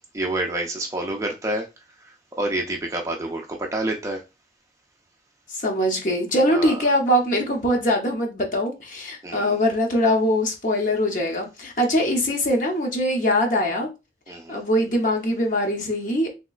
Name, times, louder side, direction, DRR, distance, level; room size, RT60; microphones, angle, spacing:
voice 1, 0.1-1.7 2.0-4.2 6.5-6.8 9.2-9.6 14.3-14.6, right 1 dB, 15° right, 0.4 m, -28 dB
voice 2, 5.5-13.9 14.5-16.3, equal, 45° left, 0.8 m, -22 dB
3.4 x 2.9 x 2.3 m
head